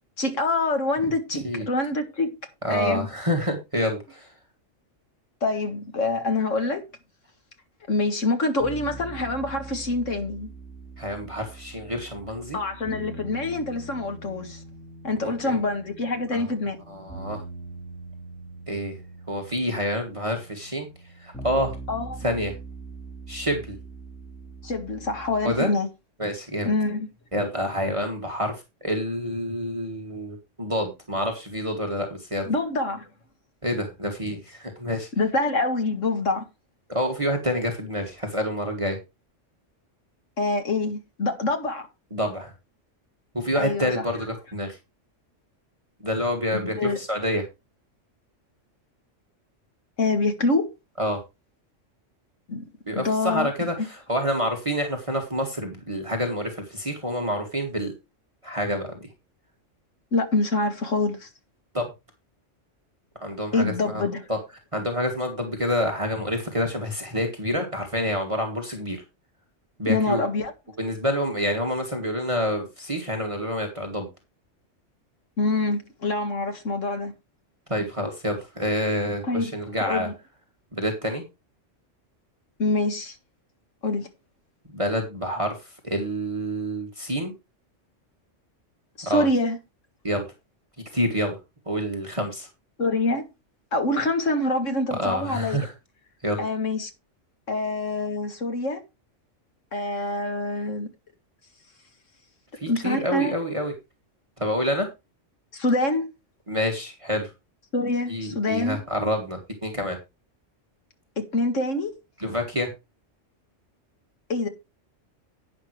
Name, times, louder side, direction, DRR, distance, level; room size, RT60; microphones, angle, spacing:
voice 1, 0.2-2.4 2.7-3.1 5.4-6.9 7.9-10.5 12.5-14.6 15.0-16.8 21.9-22.2 24.6-25.9 26.6-27.1 32.5-33.1 35.2-36.4 40.4-41.9 43.6-44.1 46.5-47.0 50.0-50.7 52.5-52.7 52.9-53.7 60.1-61.3 63.5-64.3 69.9-70.5 75.4-77.1 79.2-79.5 79.8-80.1 82.6-83.2 83.8-84.1 89.0-89.6 92.8-93.3 93.7-95.6 96.4-96.9 97.5-98.8 99.7-100.9 102.7-103.3 105.5-106.1 107.7-108.8 111.2-111.9 114.3-114.5, left 2 dB, 85° left, 2.2 m, -25 dB
voice 2, 1.3-1.7 2.6-4.3 11.0-12.6 15.2-15.6 16.3-16.5 16.9-17.4 18.7-19.0 19.3-20.9 21.2-21.8 22.2-22.5 23.3-23.8 25.4-25.7 26.2-26.7 27.3-32.5 33.6-35.1 36.9-39.0 42.1-42.5 43.3-44.8 46.0-47.4 51.0-51.2 52.9-57.9 58.4-59.0 61.7-61.9 63.2-64.0 64.3-64.4 64.7-69.0 69.8-70.2 70.8-74.1 77.7-80.1 80.7-81.2 84.7-87.3 89.0-89.3 90.0-90.3 90.9-91.4 91.7-92.5 94.9-95.7 96.2-96.4 102.6-103.7 104.4-104.9 106.5-107.3 108.1-110.0 112.2-112.7, equal, 25° right, 2.3 m, -27 dB
sound 1, 8.6-25.6, right 3 dB, 5° left, 5.1 m, -42 dB
11.0 x 9.8 x 3.2 m
omnidirectional pair, 1.3 m